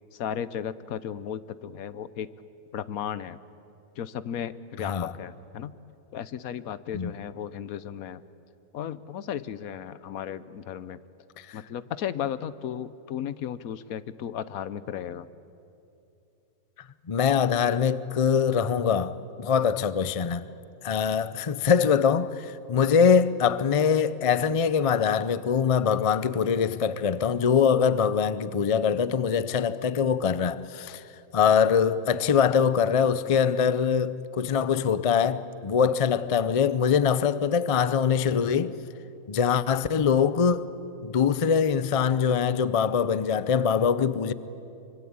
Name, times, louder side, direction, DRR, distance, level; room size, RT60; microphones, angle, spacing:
voice 1, 0.1-2.3 2.7-3.4 4.0-5.8 6.1-8.2 8.7-11.0 11.5-15.3, left 9 dB, 70° left, 1.2 m, -35 dB
voice 2, 17.1-20.5 20.8-31.0 31.3-38.8 39.3-40.7 41.0-44.3, left 7 dB, 50° left, 0.4 m, -23 dB
25.0 x 24.5 x 8.7 m
omnidirectional pair, 1.6 m